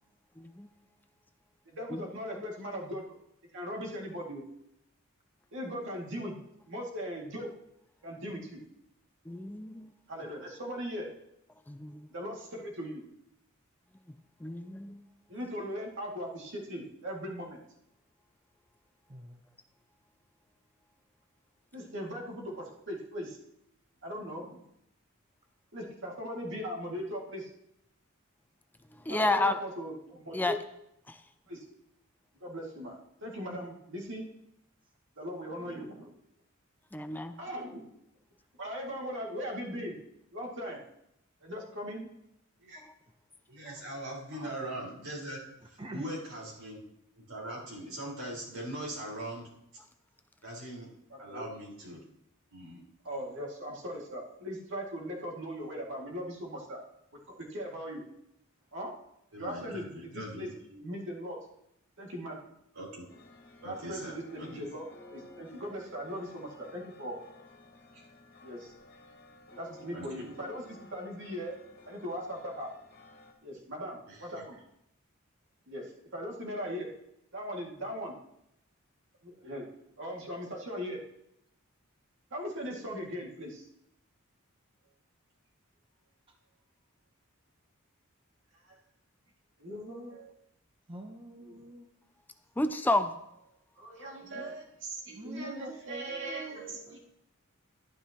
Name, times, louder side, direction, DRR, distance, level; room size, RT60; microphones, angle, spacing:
voice 1, 0.4-0.7 1.9-2.0 9.3-9.9 11.7-12.1 14.4-15.0 29.0-29.6 30.3-30.6 31.1-31.2 33.6-33.7 36.9-37.3 42.8-42.9 92.6-93.1, left 2 dB, 10° left, 9 dB, 0.4 m, -30 dB
voice 2, 1.7-3.2 3.5-4.4 5.5-6.4 6.7-7.5 8.0-8.6 10.1-11.1 12.1-13.0 15.3-17.6 21.7-23.4 24.0-24.6 25.7-27.5 29.1-30.6 31.5-31.8 32.4-33.0 33.2-34.3 35.2-36.1 37.4-37.8 38.6-40.0 40.3-40.8 41.4-42.1 44.3-44.5 51.1-51.5 53.0-56.8 57.3-58.0 58.7-58.9 59.4-61.4 62.0-62.4 63.6-67.2 68.4-68.7 69.5-71.5 71.9-72.7 73.4-74.6 75.7-76.9 77.3-78.1 79.2-79.7 80.0-81.0 82.3-83.6 88.6-88.8 89.6-90.3 91.4-91.6 93.8-97.0, equal, 60° right, -2 dB, 2.3 m, -39 dB
voice 3, 19.1-19.4 45.8-46.0 90.9-91.9 95.1-96.6 96.9-97.0, right 2 dB, 25° right, 4 dB, 0.8 m, -46 dB
voice 4, 43.5-46.8 47.2-49.5 50.4-50.9 51.2-52.1 52.5-52.8 59.3-60.5 62.7-63.1 63.6-64.1 64.4-64.6 67.9-68.0 69.9-70.3 74.1-74.4, right 1 dB, 85° right, -4 dB, 4.6 m, -41 dB
sound 1, 63.1-73.3, left 2 dB, 45° left, 1.8 m, -55 dB
11.5 x 11.5 x 3.0 m, 0.80 s
head